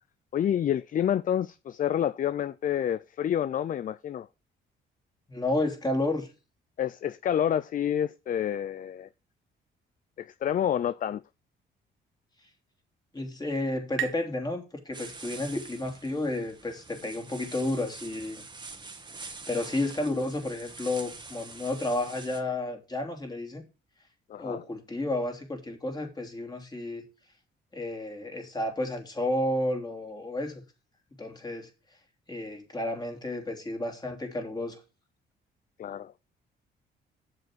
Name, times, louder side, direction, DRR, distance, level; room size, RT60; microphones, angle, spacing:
voice 1, 0.3-4.3 6.8-9.1 10.2-11.2 24.3-24.6 35.8-36.1, left 10 dB, 45° left, 0.4 m, -28 dB
voice 2, 5.3-6.3 13.1-18.4 19.2-23.6 24.4-27.1 27.7-30.6 31.2-31.7 32.3-34.8, left 2 dB, 20° left, 3.0 m, -31 dB
sound 1, 12.5-15.9, right 11 dB, 75° right, 1.1 m, -41 dB
sound 2, 14.9-22.4, right 3 dB, 20° right, 1.6 m, -45 dB
7.7 x 6.9 x 6.2 m
cardioid pair, 90°, 20 cm